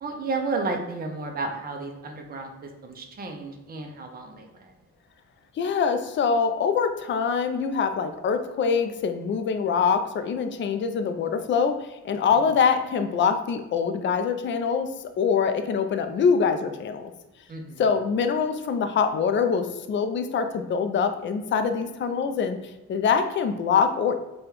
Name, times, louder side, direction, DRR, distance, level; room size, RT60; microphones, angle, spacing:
voice 1, 0.0-4.7 17.5-17.8, right 3 dB, 30° right, 3 dB, 0.6 m, -32 dB
voice 2, 5.6-11.7 12.0-14.9 15.2-17.1 17.8-22.6 22.9-24.2, left 6 dB, 40° left, 8 dB, 0.4 m, -24 dB
5.0 x 2.3 x 3.0 m, 0.98 s
cardioid pair, 90°, 30 cm